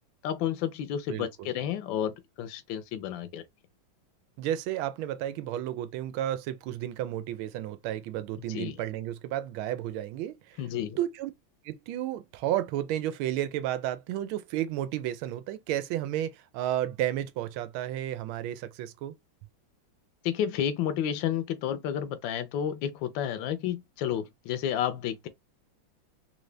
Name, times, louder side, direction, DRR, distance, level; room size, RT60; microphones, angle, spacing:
voice 1, 0.2-3.4 8.5-8.8 10.6-11.0 20.2-25.3, left 9 dB, 75° left, 1.3 m, -31 dB
voice 2, 4.4-10.6 11.0-11.3 11.6-19.1, right 12 dB, 85° right, 1.4 m, -32 dB
3.9 x 2.5 x 3.2 m
omnidirectional pair, 2.2 m